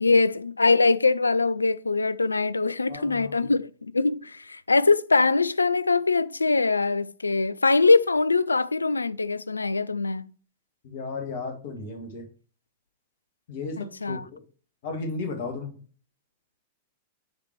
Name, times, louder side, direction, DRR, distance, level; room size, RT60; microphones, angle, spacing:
voice 1, 0.0-10.3 13.8-14.2, left 3 dB, 80° left, 0.3 m, -22 dB
voice 2, 2.9-3.5 10.8-12.3 13.5-14.4 14.8-15.8, left 3 dB, 55° left, 1.8 m, -35 dB
6.7 x 4.4 x 4.4 m
figure-of-eight pair, 95°, 0 cm